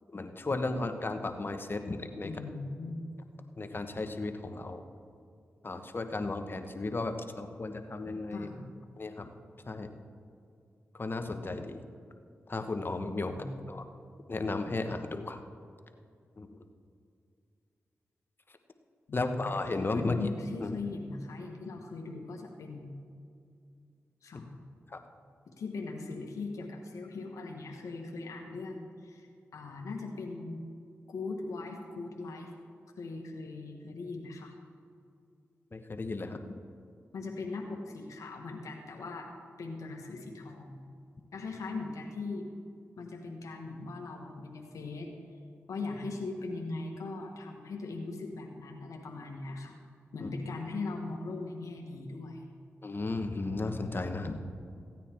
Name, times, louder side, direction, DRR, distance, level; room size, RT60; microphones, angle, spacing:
voice 1, 0.1-2.3 3.6-4.8 5.6-8.5 9.0-9.3 9.7-9.9 10.9-11.8 12.5-13.3 13.7-13.8 14.3-15.4 16.4-16.6 19.1-20.3 20.6-20.7 24.9-25.0 35.7-36.6 50.2-50.3 52.8-54.4, left 3 dB, 40° left, 7 dB, 1.1 m, -34 dB
voice 2, 2.2-3.2 8.3-8.8 13.3-13.7 19.1-19.4 19.9-22.9 24.2-24.5 25.5-29.3 29.5-30.6 31.1-32.5 33.0-34.5 37.1-39.3 39.6-40.8 41.3-42.5 43.0-45.1 45.7-49.8 50.1-52.5, left 3 dB, 80° left, 1 dB, 1.3 m, -39 dB
15.0 x 9.1 x 4.5 m, 2.4 s
cardioid pair, 45°, 5 cm